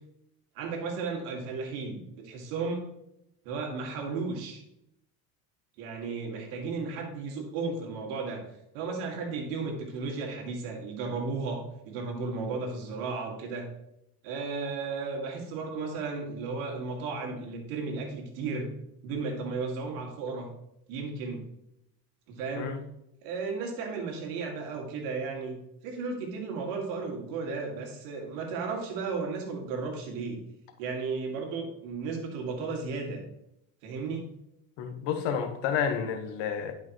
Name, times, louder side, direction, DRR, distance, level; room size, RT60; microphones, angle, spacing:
voice 1, 0.5-2.8 3.4-4.6 5.8-8.4 8.7-13.7 14.2-18.7 19.0-20.5 20.9-21.4 22.3-22.7 23.2-30.4 30.8-33.2 33.8-34.3, right 4 dB, 75° right, 2.3 m, -34 dB
voice 2, 34.8-36.7, left 7 dB, 65° left, 1.4 m, -30 dB
11.0 x 5.8 x 3.1 m
supercardioid pair, 90°, 46 cm